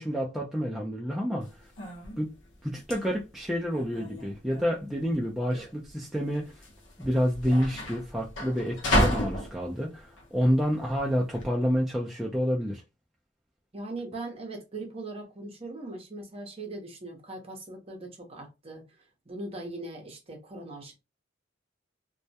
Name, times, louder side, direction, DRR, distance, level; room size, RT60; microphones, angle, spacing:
voice 1, 0.0-1.5 2.2-2.3 2.6-6.5 7.0-12.8, equal, ahead, 0.3 m, -28 dB
sound 1, 1.4-11.5, equal, 70° left, 0.7 m, -33 dB
voice 2, 13.7-18.8 19.3-20.9, right 2 dB, 30° right, 0.7 m, -40 dB
2.2 x 2.1 x 2.7 m
head